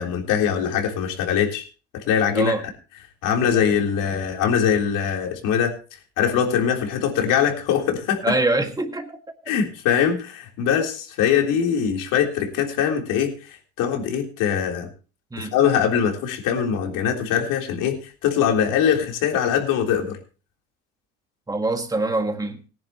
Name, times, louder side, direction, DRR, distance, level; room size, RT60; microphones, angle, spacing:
voice 1, 0.0-1.6 1.9-2.6 3.2-5.8 6.2-8.3 9.5-14.9 15.4-20.2, left 8 dB, 75° left, 3.6 m, -22 dB
voice 2, 8.2-9.2 15.3-15.5 21.5-22.6, right 2 dB, 10° right, 1.8 m, -24 dB
18.5 x 10.5 x 3.0 m
cardioid pair, 115°, 32 cm